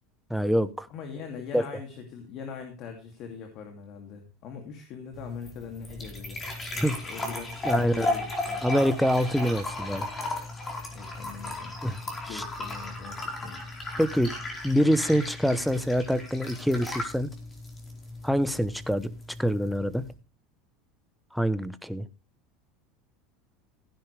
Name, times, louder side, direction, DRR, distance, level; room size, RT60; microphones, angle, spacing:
voice 1, 0.3-0.9 1.5-1.6 6.8-7.0 7.7-8.1 8.6-10.1 11.8-12.0 12.3-12.4 14.0-14.3 14.6-17.3 18.2-19.1 19.4-20.1 21.3-22.0, equal, ahead, 15 dB, 0.8 m, -25 dB
voice 2, 0.9-6.4 7.0-8.6 10.9-11.8 12.3-13.6, left 6 dB, 50° left, 5 dB, 2.5 m, -41 dB
sound 1, 5.1-20.1, left 2 dB, 20° left, 4.3 m, -35 dB
16.0 x 10.5 x 3.3 m, 0.28 s
supercardioid pair, 140°, 0 cm